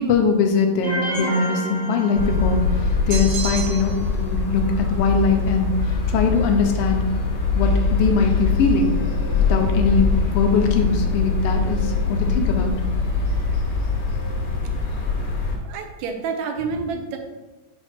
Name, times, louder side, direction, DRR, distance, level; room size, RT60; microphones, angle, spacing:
voice 1, 0.0-7.1 7.5-9.0 9.5-12.7, left 4 dB, 75° left, 4 dB, 1.3 m, -21 dB
sound 1, 0.8-2.9, equal, 35° left, 1.5 m, -30 dB
sound 2, 2.2-15.6, left 4 dB, 55° left, 2.1 m, -23 dB
sound 3, 3.1-4.1, right 5 dB, 50° right, 1.3 m, -31 dB
voice 2, 15.6-17.2, right 5 dB, 75° right, 5 dB, 2.0 m, -28 dB
5.5 x 4.4 x 6.0 m, 1.2 s
omnidirectional pair, 3.4 m